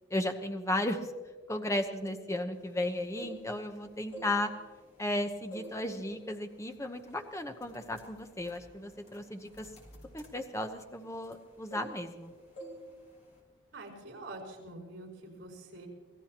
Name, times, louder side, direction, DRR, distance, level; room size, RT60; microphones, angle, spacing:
voice 1, 0.1-1.0 1.5-4.5 5.0-9.7 10.1-12.3, left 1 dB, 15° left, 5 dB, 0.9 m, -35 dB
sound 1, 2.9-3.7 4.0-5.1 5.5-5.8 6.2-6.5 7.1-7.2 7.6-11.4 11.7-12.3 12.6-12.8 13.1-13.4, right 1 dB, 35° left, 3.0 m, -48 dB
voice 2, 13.7-15.9, right 2 dB, 65° right, 0 dB, 5.0 m, -46 dB
26.5 x 17.0 x 3.0 m, 1.4 s
head